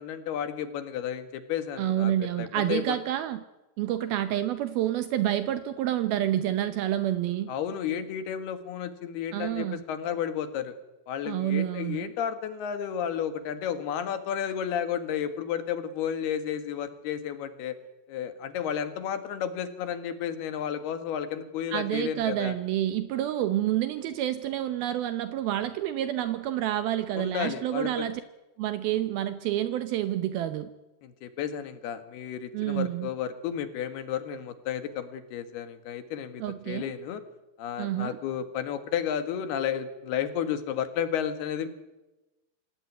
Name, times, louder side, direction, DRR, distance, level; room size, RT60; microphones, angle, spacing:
voice 1, 0.0-3.0 7.5-10.7 11.1-17.8 18.1-22.5 27.1-27.9 31.0-37.2 37.6-41.7, left 9 dB, 75° left, 10 dB, 3.6 m, -32 dB
voice 2, 1.8-3.4 3.8-7.5 9.3-9.8 11.2-12.1 21.7-28.2 28.6-30.7 32.5-33.1 36.4-36.9 37.8-38.2, right 12 dB, 75° right, 10 dB, 2.7 m, -28 dB
26.0 x 17.5 x 9.5 m, 1.0 s
omnidirectional pair, 4.6 m